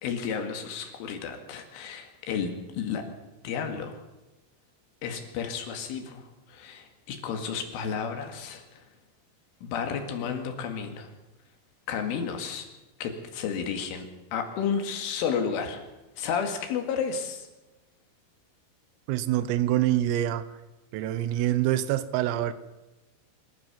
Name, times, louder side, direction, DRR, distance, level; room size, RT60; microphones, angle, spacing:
voice 1, 0.0-3.0 3.4-4.0 5.0-8.7 9.6-11.1 11.9-12.7 13.0-15.8 16.2-17.5, left 6 dB, 75° left, 5 dB, 4.5 m, -32 dB
voice 2, 19.1-20.5 20.9-22.5, right 13 dB, 85° right, 13 dB, 3.7 m, -25 dB
26.5 x 13.5 x 7.5 m, 1.0 s
omnidirectional pair, 5.9 m